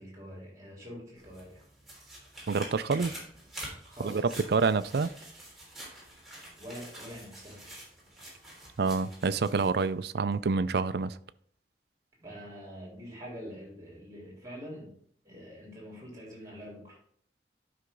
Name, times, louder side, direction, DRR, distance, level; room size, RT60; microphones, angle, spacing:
voice 1, 0.0-1.6 2.9-3.2 3.9-4.3 6.4-7.6 12.2-15.0 15.2-17.0, equal, 20° right, 3.8 m, -45 dB
sound 1, 1.2-9.9 10.3-10.4, right 1 dB, ahead, 3.4 m, -47 dB
voice 2, 2.5-3.1 4.0-5.1 8.8-11.2, right 4 dB, 65° right, 0.4 m, -27 dB
11.5 x 5.7 x 3.9 m
head